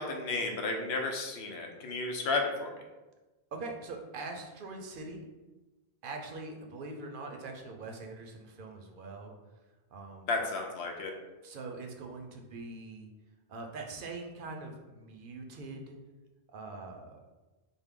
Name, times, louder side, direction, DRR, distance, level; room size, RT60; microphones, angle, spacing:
voice 1, 0.0-2.7 10.3-11.1, left 3 dB, 90° left, 2 dB, 0.9 m, -33 dB
voice 2, 3.5-5.2 6.0-9.3 9.9-10.3 11.4-13.1 13.5-16.0 16.5-17.2, right 3 dB, 65° right, 2 dB, 0.7 m, -43 dB
4.4 x 2.1 x 3.6 m, 1.2 s
omnidirectional pair, 1.0 m